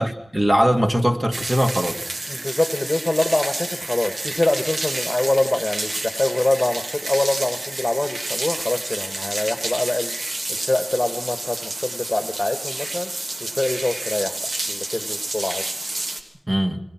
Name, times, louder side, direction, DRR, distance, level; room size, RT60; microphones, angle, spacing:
voice 1, 0.0-2.1 16.5-16.8, equal, 25° right, 5 dB, 2.5 m, -20 dB
sound 1, 1.3-16.2, right 2 dB, 70° right, 2.9 m, -30 dB
voice 2, 2.3-10.2 10.5-13.1 13.4-14.4 14.7-15.7, left 1 dB, 25° left, 8 dB, 1.7 m, -24 dB
29.0 x 23.0 x 6.1 m, 0.71 s
cardioid pair, 45°, 0 cm